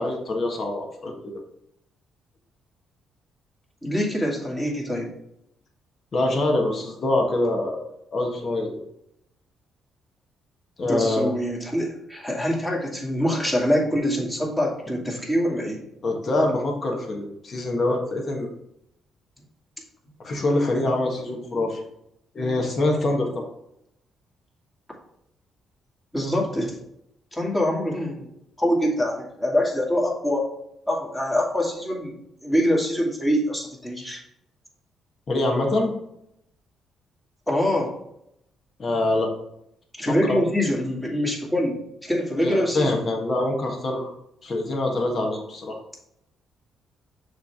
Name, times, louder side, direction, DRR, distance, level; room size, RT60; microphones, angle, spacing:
voice 1, 0.0-1.4 6.1-7.8 8.1-8.8 10.8-11.4 16.0-18.5 20.2-21.9 22.3-23.4 35.3-35.9 38.8-39.3 40.3-40.4 42.3-44.1 44.4-45.8, left 2 dB, 45° left, 1 dB, 1.5 m, -25 dB
voice 2, 3.8-5.1 10.8-15.8 26.1-26.8 27.3-28.3 28.6-30.4 30.9-32.2 32.4-34.2 37.5-37.9 40.0-43.0, equal, 10° left, -3 dB, 2.2 m, -24 dB
6.7 x 3.5 x 4.7 m, 0.78 s
cardioid pair, 90°, 0 cm